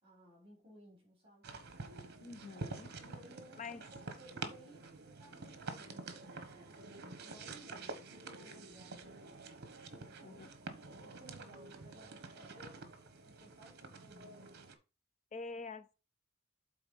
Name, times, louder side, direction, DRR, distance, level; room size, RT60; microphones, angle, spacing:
voice 1, 0.0-1.5 3.0-9.3 9.8-10.5 10.8-14.4, equal, 25° right, 3.4 m, -60 dB
sound 1, 1.4-14.8, right 3 dB, 50° right, 1.1 m, -48 dB
voice 2, 2.2-2.9 3.6-3.8 10.2-10.5 15.3-15.9, left 4 dB, 35° left, 0.5 m, -46 dB
8.2 x 3.8 x 5.1 m
head